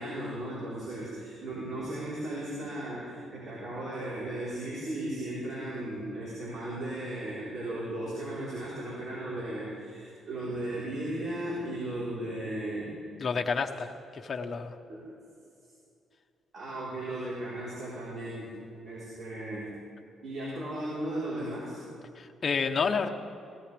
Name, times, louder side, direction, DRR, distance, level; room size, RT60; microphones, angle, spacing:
voice 1, 0.0-12.9 14.9-15.1 16.5-18.5 18.9-19.7 20.2-21.8, right 1 dB, 55° right, -7 dB, 4.1 m, -36 dB
voice 2, 13.2-14.8 22.2-23.1, left 5 dB, 40° left, 4 dB, 1.0 m, -30 dB
18.0 x 17.5 x 3.4 m, 2.5 s
cardioid pair, 90°, 0 cm